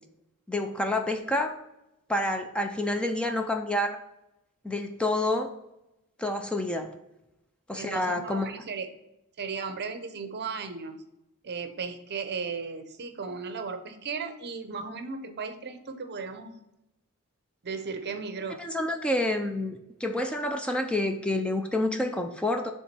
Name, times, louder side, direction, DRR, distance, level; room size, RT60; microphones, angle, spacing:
voice 1, 0.5-1.6 2.1-4.0 4.6-5.5 6.2-6.9 7.7-8.5 18.6-22.7, left 1 dB, 5° left, 4 dB, 0.4 m, -28 dB
voice 2, 7.7-8.9 9.4-11.0 11.4-16.6 17.6-18.6, right 5 dB, 50° right, 8 dB, 0.7 m, -36 dB
6.9 x 3.6 x 4.4 m, 0.89 s
head